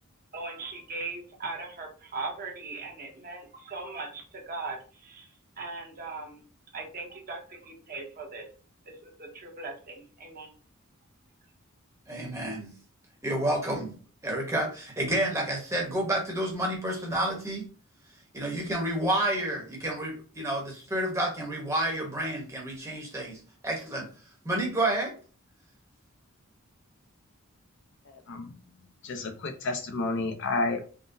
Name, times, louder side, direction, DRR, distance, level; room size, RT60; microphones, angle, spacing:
voice 1, 0.3-6.4 6.7-8.5 8.8-10.5, right 3 dB, 40° right, 0 dB, 0.8 m, -39 dB
voice 2, 12.1-12.7 13.2-14.0 14.2-17.7 18.3-24.1 24.4-25.1, right 1 dB, 15° right, -1 dB, 0.9 m, -30 dB
voice 3, 28.1-28.5 29.0-30.8, left 3 dB, 55° left, 6 dB, 0.5 m, -31 dB
3.6 x 2.1 x 2.6 m, 0.38 s
head